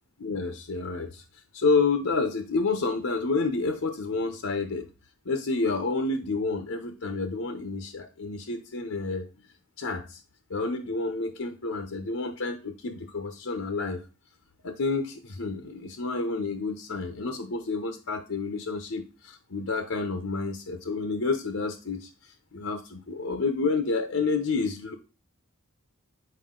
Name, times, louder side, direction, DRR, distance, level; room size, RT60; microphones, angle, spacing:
voice 1, 0.2-1.2 1.5-4.9 5.3-9.3 9.8-10.2 10.5-14.0 14.6-22.1 22.5-25.0, left 3 dB, 75° left, 7 dB, 0.8 m, -29 dB
7.6 x 4.7 x 3.7 m, 0.31 s
head